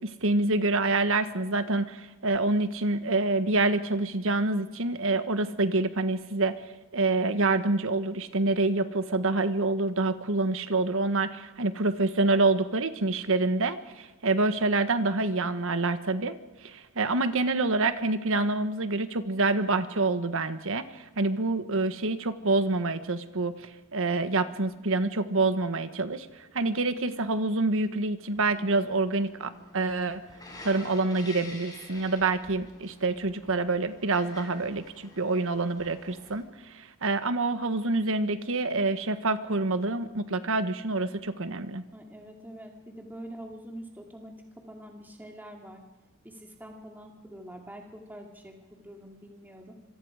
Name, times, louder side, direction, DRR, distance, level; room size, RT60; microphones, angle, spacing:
voice 1, 0.0-6.6 6.9-16.4 16.6-26.3 26.5-30.2 30.6-41.8, right 3 dB, 65° right, 10 dB, 1.4 m, -27 dB
sound 1, 28.3-36.4, left 2 dB, 20° left, 5.8 m, -48 dB
voice 2, 41.9-45.8 46.2-49.7, equal, 10° right, 1 dB, 2.4 m, -45 dB
26.5 x 24.0 x 5.0 m, 1.1 s
head